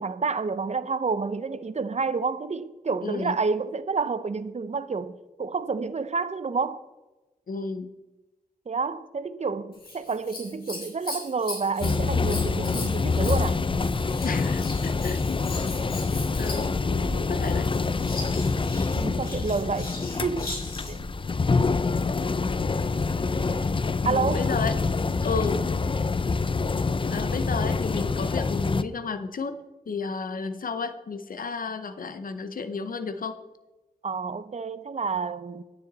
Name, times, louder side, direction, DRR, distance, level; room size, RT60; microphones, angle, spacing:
voice 1, 0.0-6.8 8.7-13.6 19.0-19.9 20.2-20.5 20.9-21.0 24.0-24.5 34.0-35.6, right 4 dB, 50° right, 0.6 m, -29 dB
voice 2, 3.0-3.3 7.5-7.9 14.2-15.4 16.4-17.7 24.0-24.8 25.2-25.7 27.1-29.6 29.9-33.4, left 4 dB, 70° left, 0.7 m, -32 dB
Scissors, 9.7-21.1 23.0-23.7 24.4-24.5, left 2 dB, 85° left, 3.7 m, -39 dB
sound 1, 11.8-28.8, left 4 dB, 35° left, 0.4 m, -26 dB
9.6 x 9.2 x 4.0 m
wide cardioid pair, 60°, 15 cm